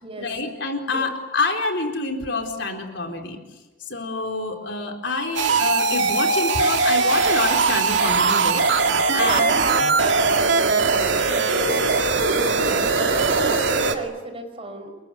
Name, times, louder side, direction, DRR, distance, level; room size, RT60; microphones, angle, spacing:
voice 1, 0.2-3.4 3.9-8.7 9.1-9.8 12.5-12.8, left 3 dB, 75° left, 5 dB, 4.4 m, -27 dB
sound 1, 5.4-14.0, right 4 dB, 85° right, 2.3 m, -20 dB
voice 2, 9.1-11.9 12.3-14.9, right 2 dB, 30° right, 6 dB, 5.1 m, -33 dB
29.5 x 23.0 x 8.2 m, 1.1 s
head